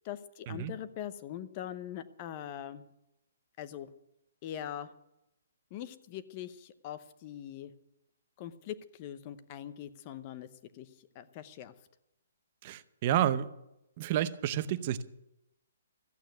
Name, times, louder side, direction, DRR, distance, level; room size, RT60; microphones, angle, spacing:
voice 1, 0.0-2.8 3.6-3.9 4.4-4.9 5.7-7.7 8.4-10.5 10.7-11.7, left 10 dB, 25° left, 0.8 m, -42 dB
voice 2, 12.6-13.5 14.0-15.0, right 11 dB, 30° right, 0.7 m, -30 dB
14.5 x 8.8 x 9.2 m
hypercardioid pair, 170°, 0 cm